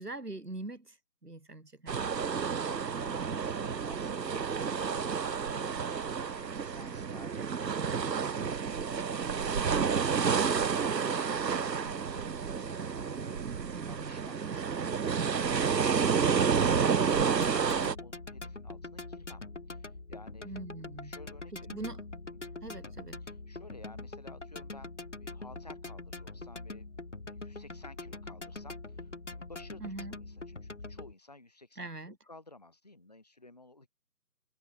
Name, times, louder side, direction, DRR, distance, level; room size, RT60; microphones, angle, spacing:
voice 1, 0.0-2.3 13.6-14.1 20.4-21.2 21.5-22.0 22.6-23.2 29.8-30.2 31.8-32.2, right 2 dB, 70° right, 3.6 m, -43 dB
sound 1, 1.9-18.0, right 6 dB, 90° right, 0.8 m, -30 dB
voice 2, 2.6-13.6 18.0-21.8 22.3-22.4 22.8-22.9 23.2-33.9, left 2 dB, 25° left, 1.9 m, -54 dB
sound 2, 17.4-31.1, left 3 dB, 45° left, 2.1 m, -44 dB
figure-of-eight pair, 165°, 48 cm